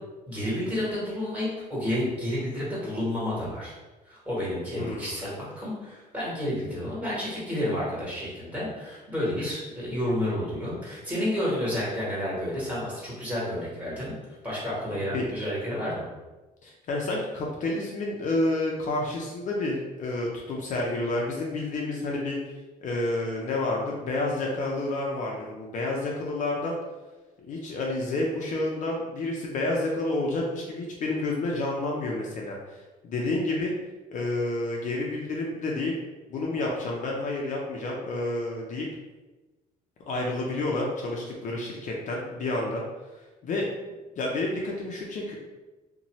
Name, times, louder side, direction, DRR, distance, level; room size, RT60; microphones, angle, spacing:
voice 1, 0.3-3.8 4.1-14.1 14.4-16.1, left 1 dB, 10° right, -8 dB, 1.3 m, -30 dB
voice 2, 4.8-5.2 15.1-15.2 16.6-22.4 22.8-26.8 27.5-33.7 34.1-36.0 36.3-38.9 40.1-42.8 43.4-43.7 44.2-45.3, left 2 dB, 50° left, -2 dB, 0.5 m, -29 dB
2.7 x 2.1 x 3.0 m, 1.2 s
cardioid pair, 110°, 17 cm